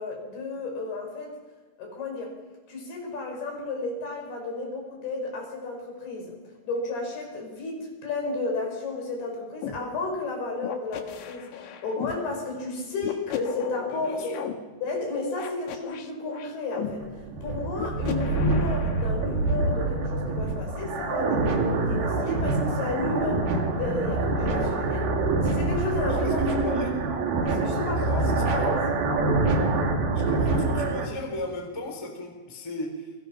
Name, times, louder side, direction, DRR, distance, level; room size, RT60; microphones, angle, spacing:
voice 1, 0.0-1.3 1.8-2.4 2.7-6.3 6.6-14.4 14.8-17.1 17.4-23.5 23.7-25.1 25.4-26.8 27.5-28.8, left 3 dB, 50° left, 1 dB, 7.6 m, -32 dB
sound 1, 9.6-9.8 10.6-12.2 13.0-14.5 15.4-16.9 17.8-19.1, left 10 dB, 70° left, 3.7 m, -36 dB
voice 2, 13.9-14.4 26.1-26.9 28.2-28.7 30.1-33.1, left 1 dB, 5° left, 3 dB, 2.9 m, -36 dB
sound 2, 16.9-31.1, right 3 dB, 55° right, 4.1 m, -25 dB
30.0 x 24.5 x 6.0 m, 1.2 s
omnidirectional pair, 5.7 m